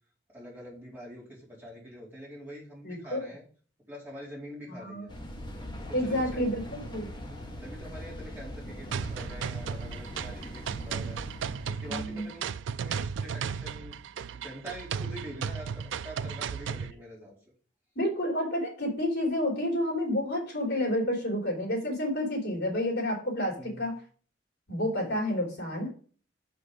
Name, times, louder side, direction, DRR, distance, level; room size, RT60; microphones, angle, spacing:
voice 1, 0.3-3.4 3.9-5.1 5.7-6.5 7.3-11.3 11.7-12.5 12.8-17.3 23.4-23.8, equal, 10° right, -6 dB, 4.2 m, -45 dB
voice 2, 2.8-3.3 4.7-5.1 5.9-7.1 11.9-12.3 18.0-23.9 24.7-25.9, left 1 dB, 60° left, -1 dB, 3.5 m, -30 dB
sound 1, 5.1-12.6, equal, 25° left, 1.4 m, -42 dB
sound 2, 8.9-16.9, right 6 dB, 75° right, 0.4 m, -35 dB
6.9 x 6.0 x 5.1 m, 0.42 s
head